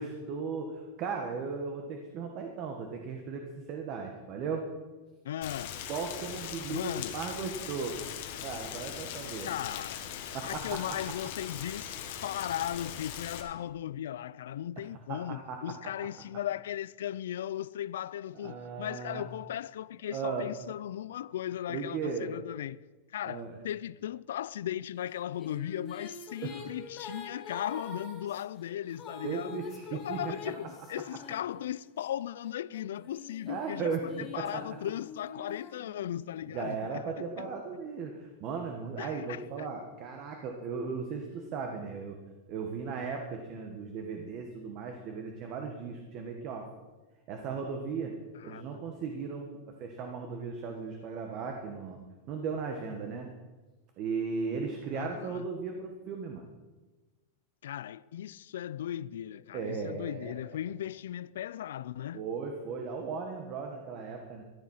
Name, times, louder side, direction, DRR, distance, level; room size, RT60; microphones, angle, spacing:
voice 1, 0.0-4.7 5.9-8.0 8.4-9.5 10.3-10.8 15.1-15.6 18.3-19.2 20.1-20.5 21.7-22.3 23.2-23.6 26.4-26.6 29.2-30.3 33.5-34.1 34.4-34.6 36.5-42.2 42.5-46.7 47.3-48.1 48.4-52.0 52.3-53.3 54.0-56.4 59.5-60.3 62.1-64.4, right 5 dB, 35° right, 1.4 m, -36 dB
voice 2, 5.2-5.8 6.7-7.2 9.4-10.1 10.4-22.8 23.1-29.6 29.9-37.5 39.0-39.7 48.3-48.8 54.9-55.5 57.6-62.2, left 11 dB, 85° left, 0.4 m, -37 dB
Rain, 5.4-13.4, left 9 dB, 55° left, 1.7 m, -40 dB
sound 1, 25.1-32.1 32.7-36.4, left 4 dB, 20° left, 1.8 m, -46 dB
14.0 x 10.5 x 5.7 m
supercardioid pair, 160°, 0 cm